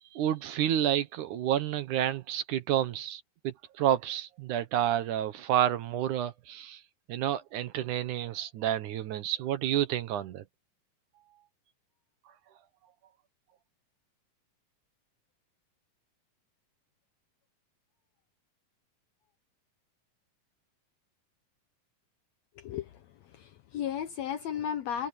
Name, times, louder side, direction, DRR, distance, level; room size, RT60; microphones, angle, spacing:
voice 1, 0.1-6.8 7.1-10.4, right 11 dB, 70° right, 2.5 m, -29 dB
voice 2, 22.6-23.0 23.3-25.1, left 9 dB, 75° left, 1.6 m, -34 dB
omnidirectional pair, 3.8 m